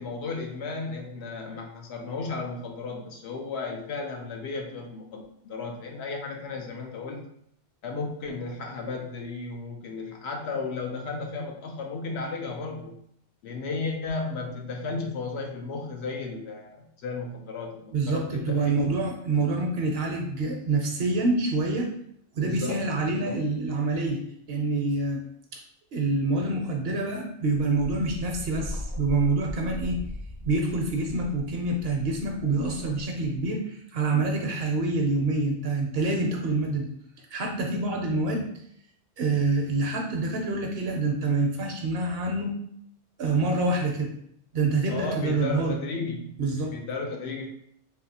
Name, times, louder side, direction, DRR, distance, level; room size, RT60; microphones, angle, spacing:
voice 1, 0.0-7.2 7.8-13.0 13.4-18.9 22.4-23.4 44.9-46.3 46.7-47.5, left 3 dB, 70° left, 2 dB, 0.8 m, -34 dB
voice 2, 17.9-21.9 22.4-24.2 24.5-25.2 25.9-30.0 30.4-36.9 37.3-38.5 39.2-42.6 43.2-44.1 44.5-45.7 46.4-46.7, right 3 dB, 65° right, 2 dB, 0.7 m, -26 dB
Wind, 27.5-33.4, left 1 dB, 25° left, 0.6 m, -39 dB
3.5 x 2.6 x 2.7 m, 0.70 s
omnidirectional pair, 1.2 m